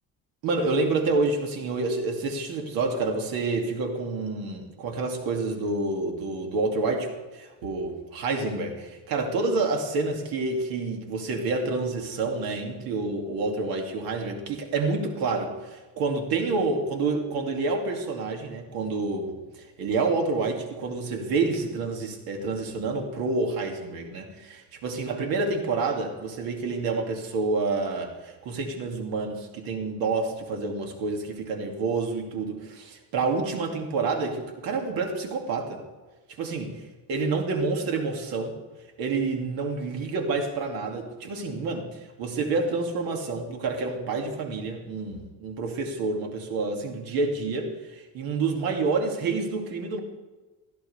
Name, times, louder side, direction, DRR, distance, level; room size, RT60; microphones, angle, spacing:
voice 1, 0.4-35.8 36.4-36.7 37.1-38.5 39.0-50.0, right 3 dB, 85° right, 2 dB, 2.5 m, -28 dB
17.5 x 15.0 x 3.4 m, 1.2 s
cardioid pair, 150°, 35 cm